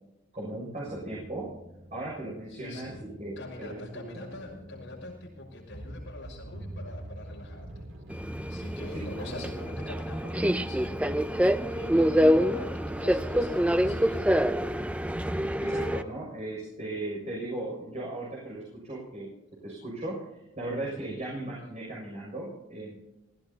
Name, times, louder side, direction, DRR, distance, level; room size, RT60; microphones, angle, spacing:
voice 1, 0.3-1.5 1.9-4.2 8.9-9.4 15.6-19.3 19.6-20.2 20.6-23.0, right 2 dB, 35° right, -5 dB, 6.6 m, -37 dB
sound 1, 0.8-12.1, right 1 dB, 65° right, 3.1 m, -47 dB
voice 2, 2.5-3.0 3.4-7.9 8.5-11.1 11.7-14.4 20.8-21.0, left 2 dB, 60° left, -1 dB, 6.2 m, -44 dB
Subway metro underground, 8.1-16.0, equal, 5° right, 0.5 m, -26 dB
28.5 x 16.5 x 2.9 m, 0.98 s
head